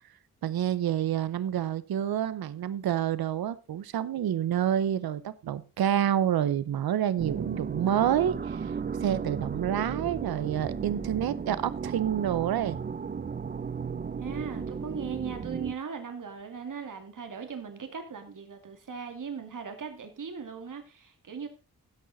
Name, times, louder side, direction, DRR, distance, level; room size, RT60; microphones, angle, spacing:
voice 1, 0.4-8.7 9.0-12.8, right 10 dB, 80° right, 0.7 m, -28 dB
sound 1, 7.2-15.8, right 6 dB, 25° right, 0.5 m, -35 dB
voice 2, 14.2-21.5, right 6 dB, 60° right, 2.2 m, -38 dB
16.0 x 6.5 x 3.9 m
wide cardioid pair, 90°, 36 cm